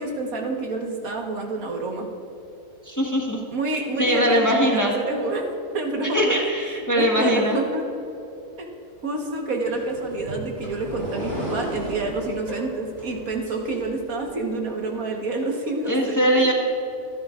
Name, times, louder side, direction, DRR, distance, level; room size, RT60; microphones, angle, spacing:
voice 1, 0.0-2.1 3.5-5.4 5.7-6.4 6.8-7.8 8.6-8.7 9.0-16.3, right 2 dB, 75° right, 1 dB, 1.8 m, -28 dB
voice 2, 2.8-5.0 6.1-7.6 15.9-16.5, equal, 15° left, -2 dB, 1.3 m, -22 dB
sound 1, 9.7-14.3, equal, 45° right, 2.7 m, -34 dB
25.0 x 11.0 x 2.5 m, 2.8 s
omnidirectional pair, 1.5 m